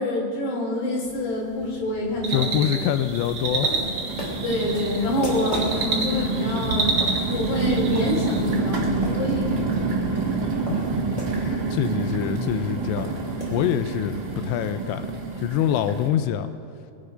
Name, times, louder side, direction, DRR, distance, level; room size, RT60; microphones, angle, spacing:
voice 1, 0.0-2.7 4.4-6.9 7.3-9.6, left 1 dB, 70° left, -3 dB, 5.2 m, -26 dB
sound 1, 1.1-1.2 1.6-2.2 2.9-16.1, right 4 dB, 75° right, 1.0 m, -28 dB
sound 2, 2.2-8.6, right 3 dB, 60° right, 1.5 m, -29 dB
voice 2, 2.3-3.7 11.4-13.1 13.5-15.1 15.4-16.5, left 11 dB, 85° left, 10 dB, 2.8 m, -25 dB
sound 3, 3.1-11.4 11.7-11.8 12.0-14.4, left 1 dB, 25° left, 2.0 m, -37 dB
22.5 x 8.7 x 5.1 m, 2.6 s
omnidirectional pair, 5.0 m